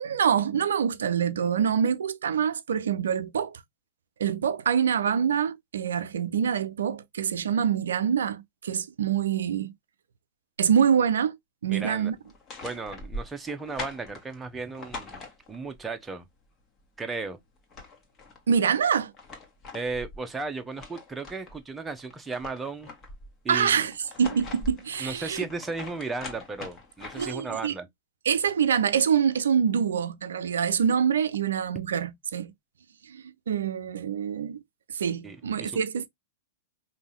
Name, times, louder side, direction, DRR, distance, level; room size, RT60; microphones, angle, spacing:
voice 1, 0.0-3.6 4.2-9.7 10.6-11.4 11.6-12.2 18.5-19.1 23.5-23.9 24.2-25.4 27.1-27.7 28.3-32.5 33.0-34.6 34.9-36.1, right 7 dB, 70° right, 0.6 m, -25 dB
voice 2, 11.7-12.1 12.6-15.2 15.5-16.2 17.0-17.4 19.7-22.9 23.4-23.9 25.0-27.9 35.2-35.8, right 4 dB, 10° right, 1.0 m, -35 dB
sound 1, 12.2-15.8 17.2-17.3 17.6-18.4 18.9-21.6 22.0-23.3 23.9-27.5, left 2 dB, 25° left, 1.7 m, -42 dB
5.2 x 2.8 x 3.1 m
figure-of-eight pair, 100°, 0 cm